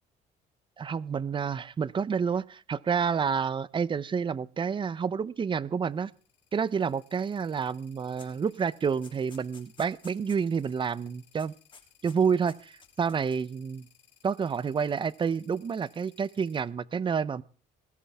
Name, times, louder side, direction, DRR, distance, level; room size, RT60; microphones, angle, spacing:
voice 1, 0.8-6.1 6.5-11.5 12.0-13.9 14.2-17.4, right 6 dB, 30° right, 19 dB, 0.7 m, -29 dB
sound 1, 5.9-16.6, left 10 dB, 90° left, 6.1 m, -62 dB
sound 2, 8.2-8.4 8.7-10.7 11.0-11.1 11.4-12.2 12.5-13.5, left 5 dB, 30° left, 3.0 m, -54 dB
20.0 x 15.5 x 3.6 m, 0.37 s
cardioid pair, 110°, 17 cm